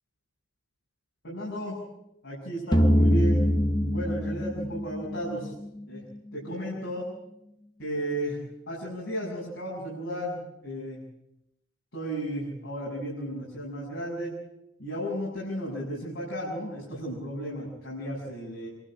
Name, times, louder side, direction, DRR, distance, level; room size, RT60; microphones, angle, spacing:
voice 1, 1.2-1.8 2.2-3.5 3.8-5.5 5.9-6.0 6.3-7.1 7.8-8.4 8.7-11.0 11.9-14.3 14.8-18.7, right 1 dB, 70° left, -6 dB, 7.0 m, -34 dB
sound 1, 2.7-5.6, equal, 20° left, 1.3 m, -23 dB
26.5 x 12.5 x 9.0 m, 0.85 s
head